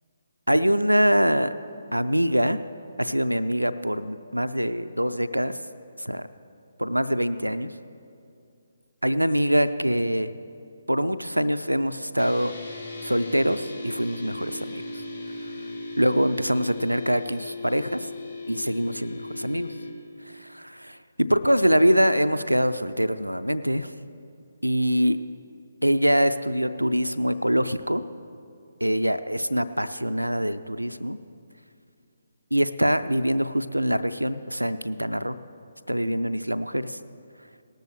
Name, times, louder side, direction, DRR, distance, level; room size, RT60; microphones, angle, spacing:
voice 1, 0.5-1.5 1.9-2.6 3.0-5.6 6.0-6.3 6.8-7.7 9.0-10.3 10.9-12.5 13.0-14.8 16.0-18.1 18.5-19.7 20.3-23.9 24.6-25.2 25.8-28.0 28.8-31.2 32.5-35.4 35.9-37.0, equal, 85° right, 12 dB, 0.4 m, -24 dB
sound 1, 12.2-19.9, left 2 dB, 60° left, 2.8 m, -37 dB
18.5 x 13.0 x 3.2 m, 2.5 s
figure-of-eight pair, 140°, 0 cm